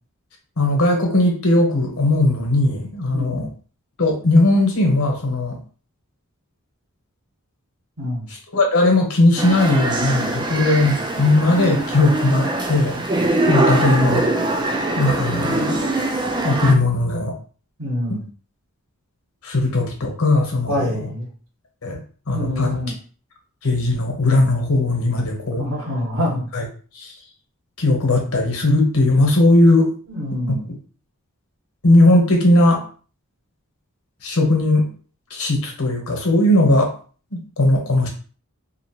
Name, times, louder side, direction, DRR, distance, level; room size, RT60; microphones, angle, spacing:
voice 1, 0.6-3.5 4.0-5.6 8.5-13.0 13.5-14.2 15.0-15.9 16.4-17.3 18.1-18.2 19.4-20.8 21.8-22.0 22.3-22.8 23.6-25.6 26.5-26.6 26.9-27.1 27.8-29.9 30.5-30.8 31.8-32.8 34.2-34.9 35.3-36.9 37.3-38.1, left 2 dB, 75° left, 1 dB, 1.0 m, -18 dB
voice 2, 3.1-3.5 8.0-8.3 17.8-18.3 20.7-21.3 22.3-22.9 25.6-26.4 30.1-30.7, left 1 dB, 60° right, -4 dB, 1.4 m, -26 dB
Museum of Contemporary Art Shanghai, 9.4-16.7, right 2 dB, 20° right, 0.3 m, -22 dB
2.8 x 2.5 x 2.8 m, 0.40 s
head